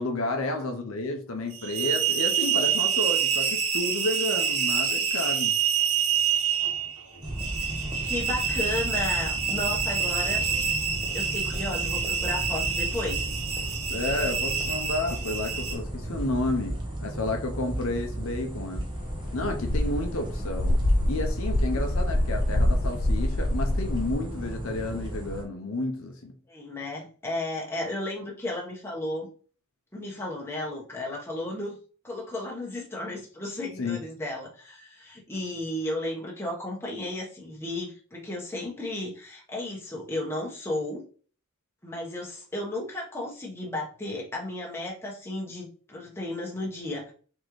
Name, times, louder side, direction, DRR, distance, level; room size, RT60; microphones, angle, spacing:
voice 1, 0.0-5.6 13.9-18.8 19.3-20.8 21.1-26.3 33.8-34.0, left 2 dB, 65° left, 4 dB, 0.7 m, -31 dB
sound 1, 1.5-15.7, right 7 dB, 85° right, 1.6 m, -27 dB
sound 2, 7.2-25.4, right 1 dB, 20° right, 0.9 m, -35 dB
voice 2, 8.0-10.5 11.1-13.3 26.5-29.3 29.9-31.8 32.0-41.0 41.8-47.1, left 1 dB, 10° left, -3 dB, 1.2 m, -34 dB
sound 3, 19.0-24.2, left 1 dB, 40° left, 0.5 m, -26 dB
4.2 x 3.7 x 3.2 m, 0.41 s
head